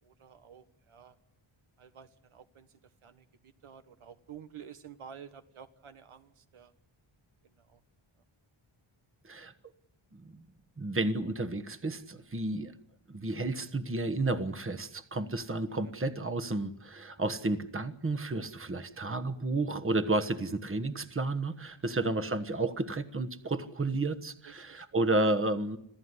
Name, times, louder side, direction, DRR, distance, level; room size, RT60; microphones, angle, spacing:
voice 1, 0.0-1.2 1.8-6.7 7.4-7.8 15.8-15.9 24.4-24.9, right 8 dB, 80° right, 9 dB, 1.4 m, -51 dB
voice 2, 10.1-10.4 10.8-12.7 13.1-25.8, right 2 dB, 25° right, 11 dB, 1.3 m, -32 dB
26.5 x 15.0 x 9.7 m, 0.79 s
wide cardioid pair, 110°, 50 cm